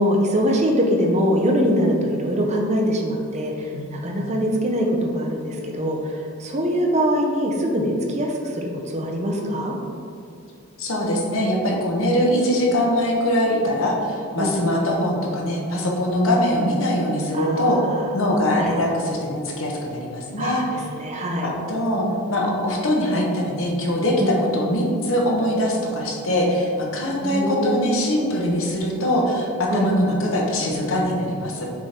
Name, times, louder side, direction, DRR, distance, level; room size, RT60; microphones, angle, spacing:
voice 1, 0.0-9.7 14.4-14.5 17.3-18.1 18.6-18.7 20.4-21.5 24.2-24.3 27.2-27.9 29.7-29.9, equal, 30° right, 1 dB, 0.6 m, -23 dB
voice 2, 3.7-4.0 10.8-17.8 18.1-20.6 21.4-31.6, left 1 dB, 65° left, -1 dB, 1.0 m, -22 dB
6.1 x 3.7 x 4.3 m, 2.5 s
head